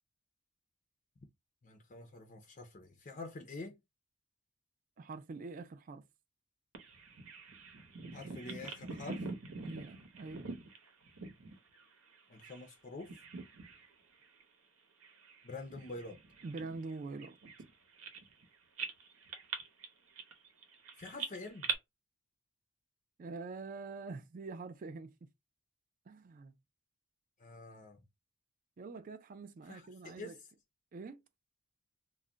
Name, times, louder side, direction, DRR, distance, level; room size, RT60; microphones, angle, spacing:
voice 1, 1.6-3.7 8.1-9.2 12.3-13.2 15.4-16.2 21.0-21.7 27.4-28.0 29.7-30.4, left 3 dB, 35° left, 0.5 m, -47 dB
voice 2, 5.0-6.0 9.6-10.5 16.4-17.4 23.2-25.3 26.1-26.5 28.8-30.4 30.9-31.2, right 3 dB, 40° right, 0.3 m, -45 dB
Bird vocalization bird call bird song, 6.7-12.7 13.0-13.9 14.2-14.4 15.0-18.4 18.8-21.7, right 4 dB, 80° right, 0.8 m, -44 dB
2.3 x 2.1 x 3.7 m
head